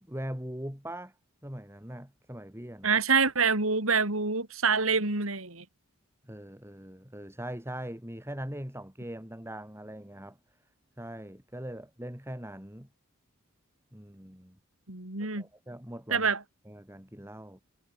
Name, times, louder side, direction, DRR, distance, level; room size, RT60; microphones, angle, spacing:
voice 1, 0.1-1.1 1.4-3.0 6.3-10.4 11.0-12.9 13.9-14.6 15.4-16.3 16.7-17.6, right 1 dB, 10° right, 5.3 m, -41 dB
voice 2, 2.8-5.6 14.9-15.4 16.1-16.4, right 5 dB, 70° right, 4.1 m, -26 dB
head